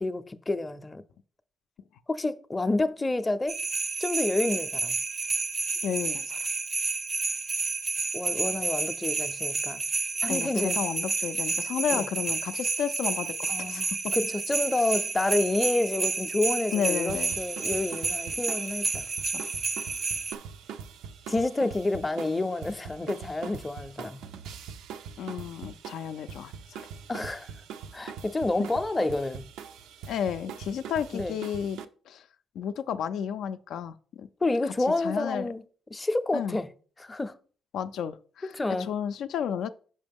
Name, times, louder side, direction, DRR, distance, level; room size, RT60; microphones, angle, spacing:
voice 1, 0.0-1.0 2.1-3.6 4.0-5.0 8.1-9.8 10.2-10.8 11.9-12.1 13.5-19.1 21.3-24.2 27.1-27.5 27.9-29.4 31.1-31.3 34.4-35.6 35.9-36.7 37.0-37.3 38.5-38.9, left 2 dB, 20° left, 0.5 m, -29 dB
sound 1, 3.5-20.4, right 4 dB, 30° right, 0.5 m, -30 dB
voice 2, 5.8-6.4 10.3-14.1 16.7-17.4 19.2-19.4 25.2-26.9 30.1-31.8 32.1-32.3 32.6-34.3 34.9-35.5 36.3-36.6 37.7-38.5 38.8-39.7, left 8 dB, 75° left, 0.3 m, -32 dB
sound 2, 17.1-31.9, right 7 dB, 90° right, 0.5 m, -43 dB
5.7 x 5.2 x 3.5 m
cardioid pair, 90°, 0 cm